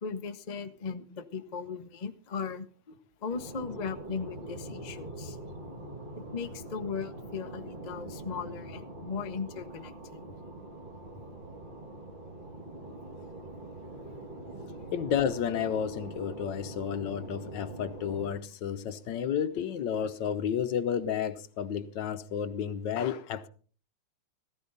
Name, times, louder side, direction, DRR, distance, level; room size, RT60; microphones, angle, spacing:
voice 1, 0.0-5.4 6.2-10.2, left 5 dB, 80° left, 0.4 m, -38 dB
sound 1, 3.3-18.3, right 1 dB, 25° right, 1.6 m, -43 dB
voice 2, 14.9-23.5, left 8 dB, 65° left, 1.3 m, -31 dB
15.0 x 15.0 x 4.0 m
omnidirectional pair, 2.4 m